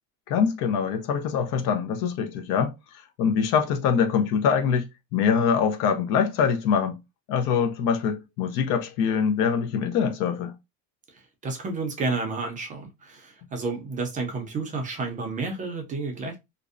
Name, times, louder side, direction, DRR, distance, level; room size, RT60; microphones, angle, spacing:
voice 1, 0.3-7.0 7.3-10.5, left 6 dB, 70° left, 0.6 m, -24 dB
voice 2, 11.4-16.4, right 3 dB, 25° right, 0.4 m, -31 dB
2.5 x 2.0 x 2.4 m
cardioid pair, 165°, 33 cm